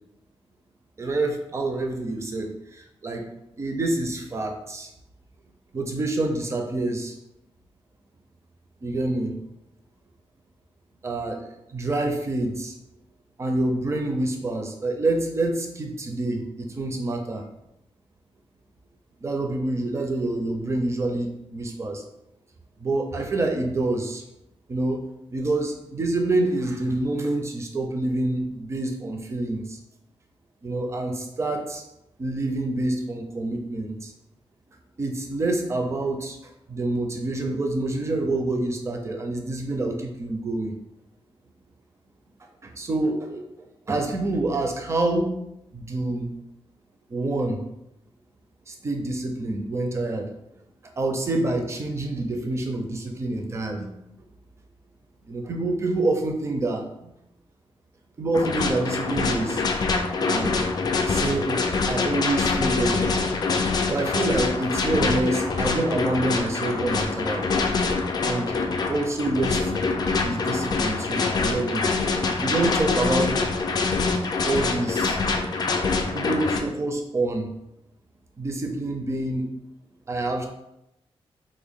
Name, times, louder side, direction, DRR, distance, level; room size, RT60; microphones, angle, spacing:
voice 1, 1.0-3.3 3.6-4.9 5.7-7.2 8.8-9.3 11.0-12.7 13.4-17.4 19.2-22.0 22.8-24.2 24.7-25.0 25.3-29.8 30.6-31.8 32.2-34.1 35.0-36.4 36.7-40.7 42.6-43.4 43.9-45.3 45.7-46.3 47.1-47.6 48.7-50.3 51.0-53.9 55.3-57.1 58.2-59.6 60.2-60.5 61.1-63.1 63.9-67.5 68.2-68.5 68.9-69.6 70.2-71.8 72.4-73.3 74.4-75.2 76.1-77.5 78.4-79.5 80.1-80.5, right 2 dB, 25° right, 4 dB, 0.4 m, -27 dB
sound 1, 58.3-76.6, left 4 dB, 40° left, 0.3 m, -25 dB
3.6 x 2.1 x 3.5 m, 0.84 s
wide cardioid pair, 165°, 11 cm